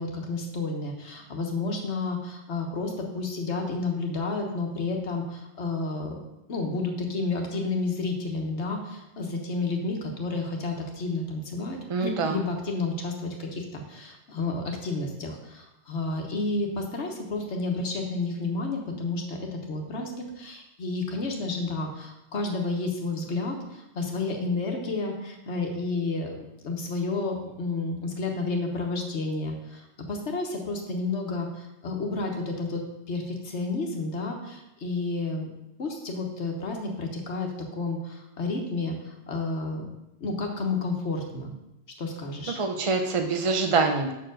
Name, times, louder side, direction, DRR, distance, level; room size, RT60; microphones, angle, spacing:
voice 1, 0.0-6.2 6.5-26.4 26.6-32.8 33.1-35.5 35.8-39.8 40.2-41.5 42.0-42.6, left 3 dB, 70° left, 2 dB, 1.4 m, -31 dB
voice 2, 11.9-12.4 42.5-44.1, right 4 dB, 50° right, 5 dB, 0.4 m, -25 dB
6.2 x 4.5 x 6.2 m, 0.91 s
omnidirectional pair, 1.2 m